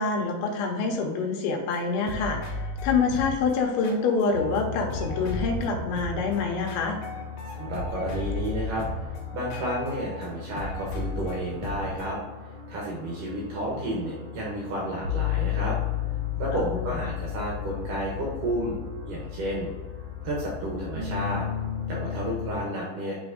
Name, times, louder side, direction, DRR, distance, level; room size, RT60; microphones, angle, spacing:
voice 1, 0.0-2.4 2.8-7.0 16.5-16.9, left 4 dB, 90° left, 2 dB, 3.1 m, -26 dB
sound 1, 1.7-1.8 2.0-4.6 4.9-10.3 10.6-12.1, left 2 dB, 65° left, 2.4 m, -35 dB
sound 2, 4.3-22.6, left 9 dB, 45° right, 1.5 m, -35 dB
voice 2, 7.5-12.2 12.4-15.8 16.4-18.8 19.1-19.7 20.2-21.5 21.9-23.2, right 1 dB, 80° right, -3 dB, 1.8 m, -31 dB
10.0 x 3.5 x 3.8 m, 1.4 s
omnidirectional pair, 5.3 m